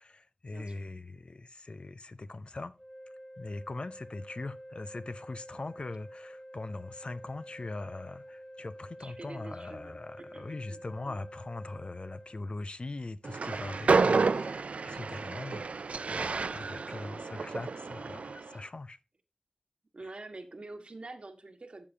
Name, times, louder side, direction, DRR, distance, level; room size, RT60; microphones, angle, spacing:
voice 1, 0.0-2.8 3.4-15.7 16.1-19.0, left 2 dB, 55° left, 0.6 m, -41 dB
sound 1, 2.8-12.4, equal, 15° left, 1.0 m, -49 dB
voice 2, 9.0-10.8 11.0-11.2 16.0-16.2 16.7-17.3 19.9-21.9, right 2 dB, 55° right, 1.4 m, -47 dB
Train, 13.2-18.5, right 4 dB, 80° right, 0.3 m, -30 dB
12.5 x 6.8 x 2.8 m
wide cardioid pair, 65°, 2 cm